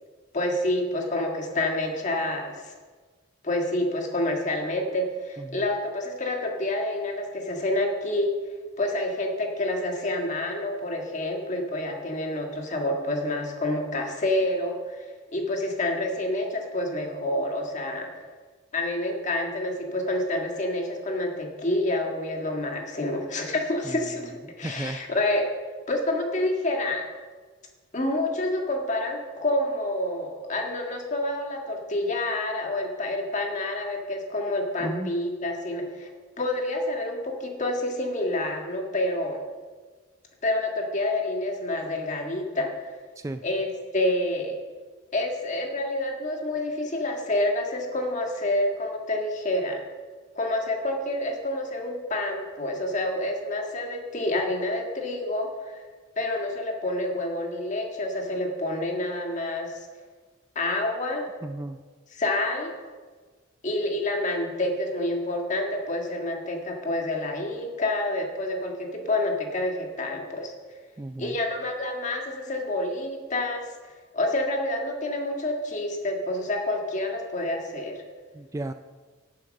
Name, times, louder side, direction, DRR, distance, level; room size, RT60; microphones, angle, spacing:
voice 1, 0.3-2.7 3.4-8.3 8.8-15.0 15.3-18.3 18.7-25.5 25.9-27.0 27.9-36.1 36.4-39.4 40.4-43.0 43.4-44.6 45.1-49.8 50.3-55.8 56.2-59.8 60.5-61.3 62.1-62.7 63.6-70.5 71.2-73.6 74.1-78.0, left 1 dB, 40° left, 2 dB, 1.7 m, -28 dB
voice 2, 24.6-25.0 34.8-35.1 43.2-43.4 61.4-61.8 71.0-71.4 78.4-78.7, right 2 dB, 15° right, 8 dB, 0.3 m, -33 dB
10.5 x 9.5 x 6.5 m, 1.5 s
head